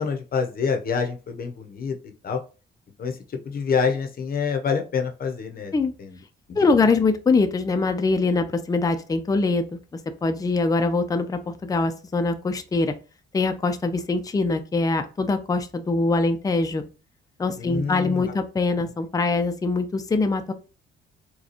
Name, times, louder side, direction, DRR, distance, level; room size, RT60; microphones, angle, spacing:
voice 1, 0.0-2.0 2.2-2.4 3.0-3.1 3.4-5.7 6.0-6.1 6.5-6.6 17.6-18.2, left 6 dB, 50° left, 5 dB, 0.8 m, -26 dB
voice 2, 6.6-9.8 10.2-12.9 13.3-16.8 17.4-20.5, left 3 dB, 20° left, 7 dB, 0.5 m, -23 dB
4.0 x 2.3 x 2.9 m, 0.33 s
cardioid pair, 90°, 20 cm